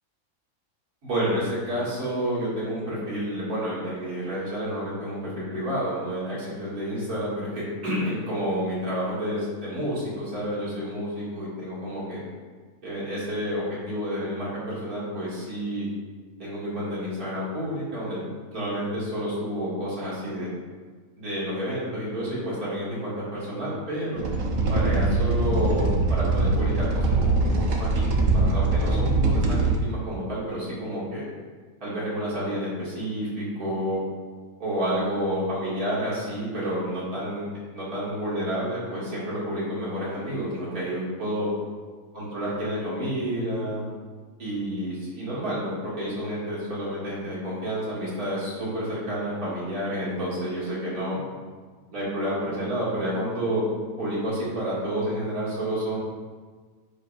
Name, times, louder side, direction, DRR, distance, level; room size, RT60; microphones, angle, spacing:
voice 1, 1.0-12.2 12.8-15.9 16.4-18.2 18.5-20.5 21.2-24.3 24.7-31.2 31.8-34.0 34.6-37.4 37.7-41.5 42.1-43.9 44.4-51.2 51.9-53.6 54.0-56.0, equal, 85° right, -8 dB, 2.8 m, -30 dB
sound 1, 24.2-29.8, right 2 dB, 65° right, 1.2 m, -22 dB
9.7 x 5.4 x 2.6 m, 1.5 s
omnidirectional pair, 1.5 m